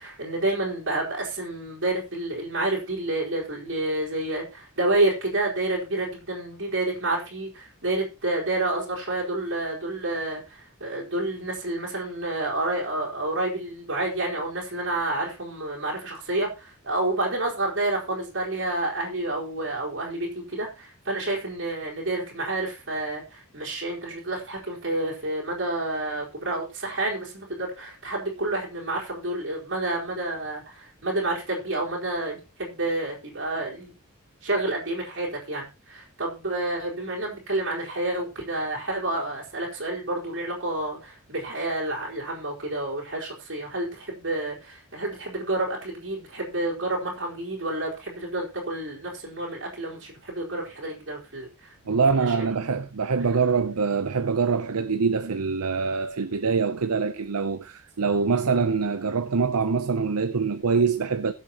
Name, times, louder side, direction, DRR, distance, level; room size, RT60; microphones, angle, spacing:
voice 1, 0.0-33.9 34.4-52.0 52.3-52.5, right 2 dB, 60° right, 4.3 m, -29 dB
voice 2, 51.9-61.3, right 5 dB, 75° right, 0.7 m, -24 dB
21.0 x 7.5 x 3.0 m
head